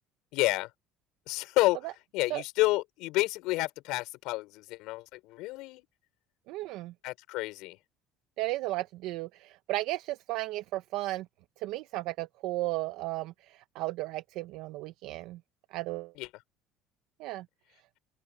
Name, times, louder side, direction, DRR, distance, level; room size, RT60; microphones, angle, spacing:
voice 1, 0.3-0.7 1.3-1.8 2.1-5.8 7.0-7.8 16.2-16.3, left 20 dB, 70° left, 5.6 m, -29 dB
voice 2, 6.5-6.9 8.4-11.3 11.6-15.4 15.7-16.1 17.2-17.4, right 18 dB, 70° right, 0.8 m, -34 dB
open air
cardioid pair, 145°, 0 cm